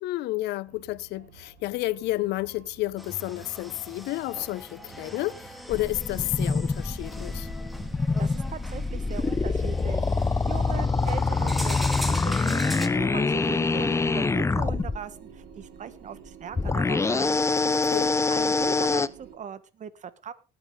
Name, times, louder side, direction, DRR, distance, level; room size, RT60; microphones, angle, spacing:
voice 1, 0.0-7.5 17.6-18.2, left 17 dB, 85° left, 0.7 m, -31 dB
sound 1, 0.7-19.3, right 7 dB, 85° right, 4.3 m, -51 dB
sound 2, 3.0-12.9, equal, ahead, 1.9 m, -40 dB
sound 3, 5.7-15.0 16.5-19.1, left 4 dB, 15° left, 0.6 m, -25 dB
voice 2, 7.9-10.1 10.5-17.4 18.3-20.3, right 7 dB, 45° right, 1.4 m, -39 dB
19.5 x 9.0 x 3.7 m
cardioid pair, 110°, 17 cm